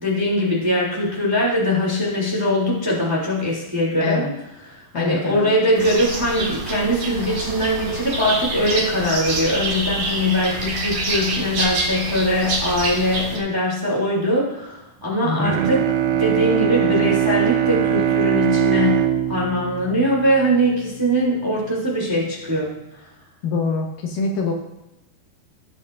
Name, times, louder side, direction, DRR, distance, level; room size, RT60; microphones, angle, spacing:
voice 1, 0.0-4.3 4.9-15.8 16.1-19.0 19.3-22.7, equal, 5° right, -4 dB, 2.0 m, -21 dB
voice 2, 4.0-4.3 4.9-5.5 15.2-15.6 23.4-24.5, left 4 dB, 70° left, 1 dB, 2.7 m, -24 dB
sound 1, 5.8-13.4, right 2 dB, 45° right, 2.1 m, -26 dB
Bowed string instrument, 15.4-21.0, right 11 dB, 85° right, 2.5 m, -21 dB
19.0 x 7.9 x 2.6 m, 0.90 s
omnidirectional pair, 4.3 m